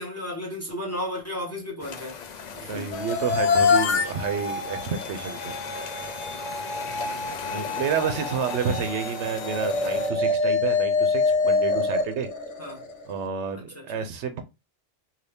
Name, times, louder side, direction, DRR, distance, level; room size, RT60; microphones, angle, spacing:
voice 1, 0.0-2.3 2.6-2.9 6.8-7.7 12.6-12.9 13.5-13.9, left 1 dB, 15° left, 0.9 m, -35 dB
sound 1, 1.8-10.1, left 6 dB, 60° left, 0.4 m, -39 dB
voice 2, 2.6-5.5 6.9-12.3 13.1-14.4, right 6 dB, 75° right, 0.9 m, -30 dB
sound 2, 2.9-13.1, left 4 dB, 85° left, 1.0 m, -26 dB
2.7 x 2.7 x 3.3 m
omnidirectional pair, 1.2 m